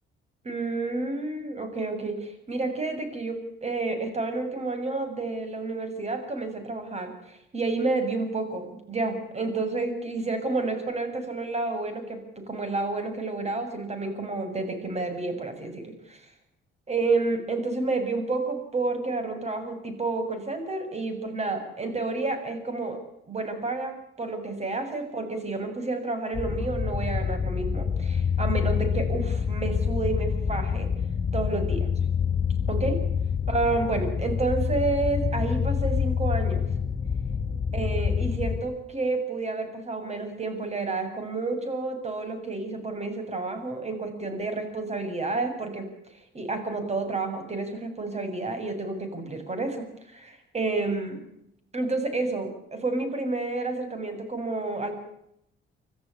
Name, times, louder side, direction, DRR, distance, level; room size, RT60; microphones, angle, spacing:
voice 1, 0.4-12.2 12.5-16.3 16.9-23.0 23.3-30.9 31.3-31.9 32.7-33.0 33.5-36.6 37.7-45.9 46.3-51.2 51.7-54.9, right 3 dB, 35° right, 8 dB, 7.4 m, -30 dB
sound 1, 26.3-38.6, left 6 dB, 35° left, 5.4 m, -27 dB
26.0 x 14.5 x 9.9 m, 0.77 s
cardioid pair, 90°, 20 cm